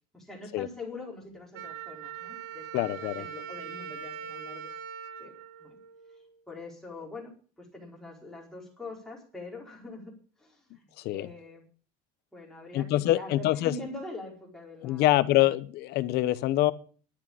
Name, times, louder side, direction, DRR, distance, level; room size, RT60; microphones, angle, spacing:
voice 1, 0.1-5.3 5.6-5.8 6.1-11.7 12.3-15.5, left 2 dB, ahead, 4.7 m, -44 dB
Wind instrument woodwind instrument, 1.5-6.3, right 8 dB, 75° right, 1.4 m, -42 dB
voice 2, 2.7-3.3 11.0-11.3 12.7-13.7 14.8-16.7, left 16 dB, 60° left, 1.0 m, -25 dB
11.5 x 8.8 x 8.7 m
cardioid pair, 145°, 19 cm